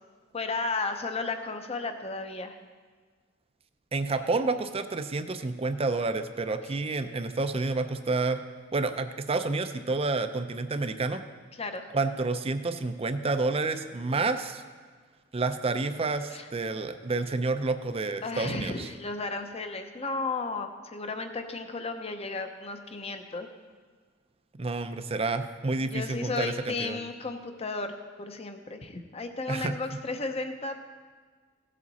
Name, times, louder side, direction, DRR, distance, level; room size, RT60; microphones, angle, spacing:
voice 1, 0.3-2.6 11.5-11.9 16.3-16.5 18.2-23.5 25.8-30.8, left 3 dB, 30° left, 7 dB, 0.7 m, -34 dB
voice 2, 3.9-8.4 8.7-11.2 11.9-14.6 15.3-18.9 24.6-27.0 29.5-29.7, right 3 dB, 30° right, 9 dB, 0.5 m, -29 dB
16.0 x 7.5 x 4.1 m, 1.5 s
head